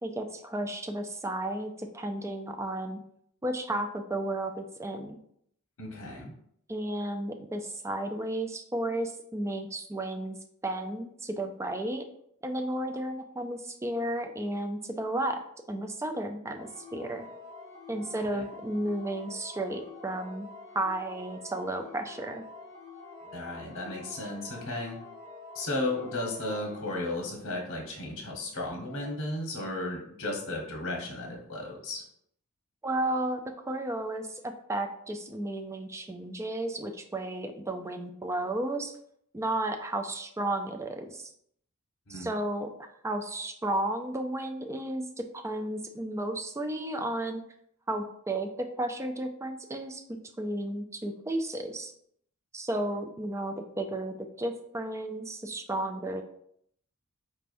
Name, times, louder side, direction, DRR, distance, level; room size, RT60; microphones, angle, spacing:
voice 1, 0.0-3.0 3.4-5.2 6.7-10.4 10.6-12.0 12.4-15.4 15.7-17.2 17.9-20.5 20.7-22.4 32.8-39.0 39.3-41.3 42.1-42.7 43.0-45.1 45.3-47.4 47.9-50.0 50.4-51.9 52.5-56.2, right 1 dB, 15° right, 5 dB, 0.3 m, -33 dB
voice 2, 5.8-6.3 18.3-18.4 23.3-25.0 25.5-32.0 42.1-42.3, left 2 dB, 60° left, 0 dB, 1.2 m, -34 dB
sound 1, 16.6-27.4 28.9-29.1, left 3 dB, 15° left, 1.0 m, -47 dB
4.4 x 3.3 x 2.5 m, 0.68 s
head